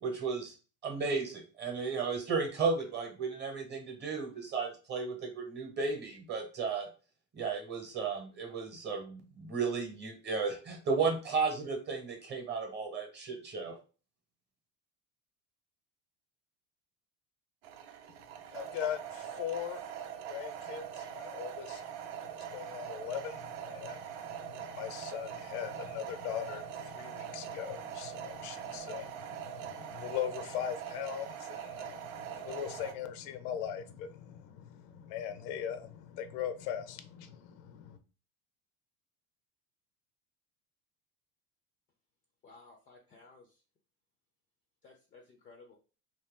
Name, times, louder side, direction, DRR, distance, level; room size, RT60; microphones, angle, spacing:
voice 1, 0.0-0.5 0.8-6.9 7.3-13.8, right 4 dB, 25° right, 1.0 m, -34 dB
sound 1, 17.6-32.9, right 9 dB, 85° right, 0.7 m, -43 dB
voice 2, 18.5-19.8 20.3-38.0, left 9 dB, 80° left, 0.6 m, -40 dB
voice 3, 42.4-43.5 44.8-45.8, left 3 dB, 20° left, 0.4 m, -56 dB
2.8 x 2.8 x 3.6 m
cardioid pair, 150°, 39 cm